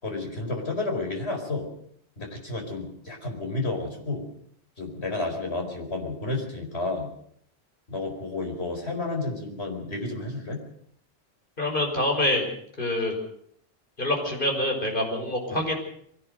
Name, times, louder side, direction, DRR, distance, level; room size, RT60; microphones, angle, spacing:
voice 1, 0.0-1.7 2.2-4.2 4.8-7.1 7.9-10.6 15.5-15.6, left 2 dB, 75° left, 2 dB, 5.0 m, -31 dB
voice 2, 11.6-12.5 12.8-13.2 14.0-15.8, left 1 dB, 50° left, 1 dB, 5.6 m, -26 dB
23.0 x 17.0 x 6.7 m, 0.66 s
omnidirectional pair, 1.1 m